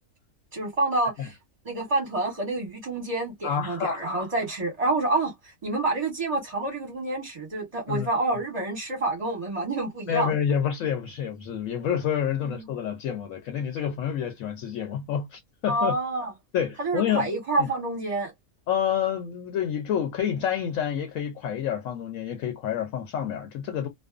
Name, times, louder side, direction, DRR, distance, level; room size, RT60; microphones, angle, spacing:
voice 1, 0.5-1.3 1.6-5.3 5.6-10.3 12.4-12.6 15.7-16.3 16.8-18.3, right 2 dB, 30° right, 0.7 m, -28 dB
voice 2, 3.4-4.0 7.9-8.1 10.1-16.0 16.5-17.3 17.6-17.7 18.7-23.9, left 8 dB, 75° left, 1.0 m, -28 dB
2.4 x 2.3 x 2.3 m
omnidirectional pair, 1.5 m